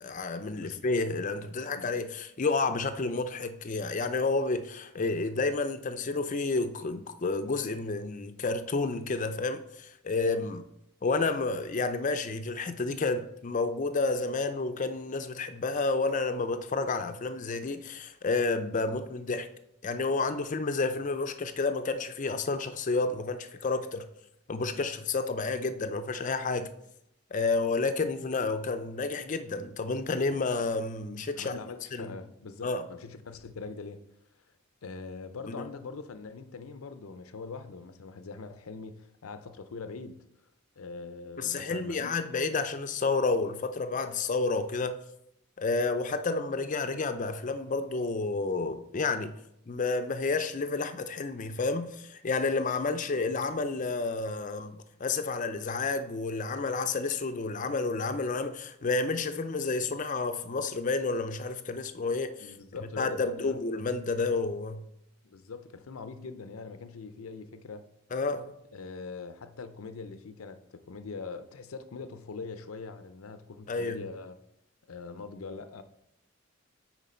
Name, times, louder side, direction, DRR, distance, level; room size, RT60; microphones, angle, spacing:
voice 1, 0.0-10.6 11.0-19.5 19.8-24.1 24.5-26.7 27.3-31.6 31.9-32.1 32.6-32.8 35.5-35.7 41.4-45.0 45.6-49.3 49.7-62.5 63.0-64.8 68.1-68.5 73.7-74.1, left 3 dB, 35° left, 0.5 m, -30 dB
voice 2, 31.3-34.0 34.8-40.2 40.8-42.1 62.4-63.6 65.2-67.9 68.7-74.4 74.9-75.8, left 4 dB, 85° left, 0.6 m, -42 dB
9.1 x 4.4 x 4.3 m
head